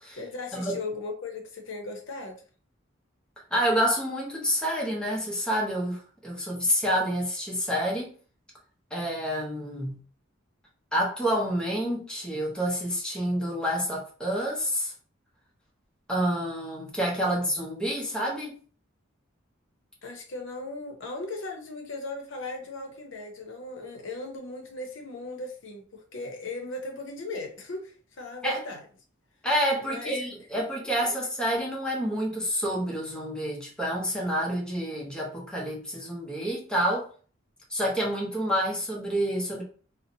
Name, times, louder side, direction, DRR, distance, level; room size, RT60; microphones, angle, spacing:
voice 1, 0.2-2.4 20.0-28.8 29.8-30.2 31.0-31.1, left 2 dB, 65° left, 0.7 m, -37 dB
voice 2, 3.5-8.1 8.9-10.0 10.9-14.9 16.1-18.6 28.4-28.6 29.4-37.1 37.7-39.6, equal, 5° left, 0.7 m, -28 dB
2.6 x 2.1 x 2.7 m
head